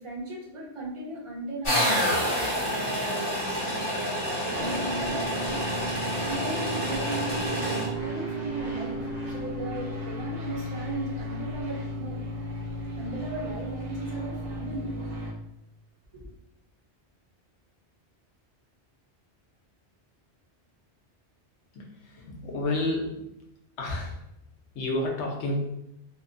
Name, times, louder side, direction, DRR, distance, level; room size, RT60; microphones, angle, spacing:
voice 1, 0.0-9.0 9.3-12.2 13.0-14.9 16.1-16.3, right 1 dB, 35° right, -3 dB, 0.5 m, -37 dB
sound 1, 1.6-7.9, equal, 30° left, 0.8 m, -28 dB
sound 2, 4.5-15.3, right 1 dB, 90° right, 1.0 m, -34 dB
voice 2, 21.7-23.2 23.8-24.2 24.7-25.6, left 2 dB, 80° left, -1 dB, 0.9 m, -30 dB
2.6 x 2.1 x 2.5 m, 0.81 s
omnidirectional pair, 1.1 m